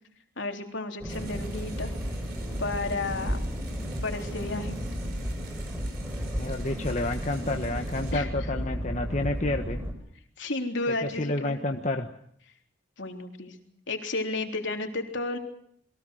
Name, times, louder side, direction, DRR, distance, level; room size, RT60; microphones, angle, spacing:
voice 1, 0.4-1.9 2.6-3.7 4.0-4.8 8.1-8.3 10.4-11.6 13.0-13.6 13.9-15.4, left 2 dB, 65° left, 3 dB, 3.6 m, -32 dB
sound 1, 1.0-9.9, equal, 10° right, 4.6 m, -33 dB
sound 2, 1.1-8.2, right 4 dB, 50° right, 5.1 m, -49 dB
voice 2, 6.4-9.8 11.0-12.1, left 2 dB, 35° left, 4 dB, 1.3 m, -30 dB
29.0 x 22.5 x 6.5 m, 0.67 s
head